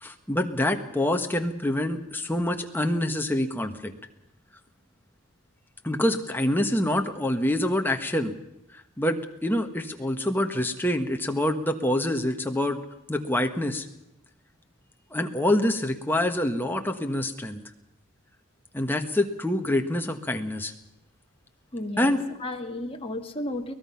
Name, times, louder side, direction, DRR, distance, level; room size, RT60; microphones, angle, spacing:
voice 1, 0.0-3.9 5.8-8.3 8.7-12.8 13.1-13.9 15.1-17.6 18.7-20.7 22.0-22.2, left 1 dB, 10° left, 5 dB, 1.4 m, -26 dB
voice 2, 21.7-23.7, left 1 dB, 25° left, 3 dB, 1.8 m, -33 dB
23.5 x 19.0 x 5.8 m, 0.89 s
head